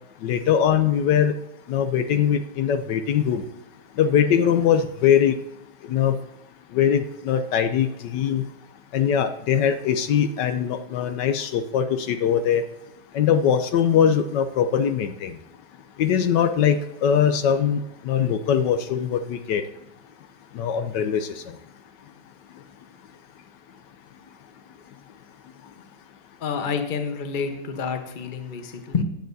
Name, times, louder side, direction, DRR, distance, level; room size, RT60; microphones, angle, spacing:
voice 1, 0.2-1.3 1.7-3.4 4.0-5.4 5.9-6.2 6.7-8.5 8.9-12.6 13.1-15.3 16.0-19.6 20.5-21.4, left 8 dB, 75° left, 9 dB, 1.2 m, -21 dB
voice 2, 26.4-29.0, left 6 dB, 35° left, 6 dB, 0.9 m, -28 dB
15.0 x 9.0 x 2.7 m, 0.89 s
omnidirectional pair, 2.0 m